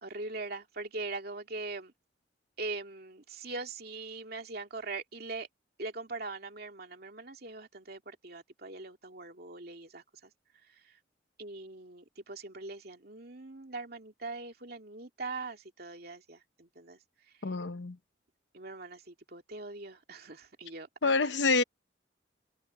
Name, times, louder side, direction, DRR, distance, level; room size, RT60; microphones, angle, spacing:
voice 1, 0.0-1.9 2.6-5.5 5.8-11.0 11.4-17.0 17.3-17.4 18.5-21.1, right 3 dB, 55° right, 2.6 m, -42 dB
voice 2, 17.4-18.0 21.0-21.6, left 3 dB, 75° left, 0.9 m, -27 dB
head